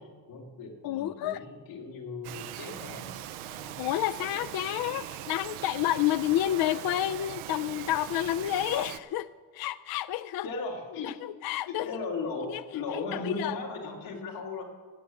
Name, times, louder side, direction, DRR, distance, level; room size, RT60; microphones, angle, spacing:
voice 1, 0.0-3.1 3.5-3.8 10.4-11.1 11.7-14.6, left 3 dB, 90° left, -2 dB, 3.0 m, -37 dB
voice 2, 0.8-1.4 3.8-9.3 9.5-10.5 11.0-12.0 12.5-12.6 12.9-13.5, left 13 dB, 50° left, 15 dB, 0.5 m, -30 dB
Bird vocalization bird call bird song, 2.2-9.0, right 12 dB, 85° right, 0.7 m, -41 dB
16.5 x 6.4 x 7.3 m, 1.5 s
supercardioid pair, 70°, 48 cm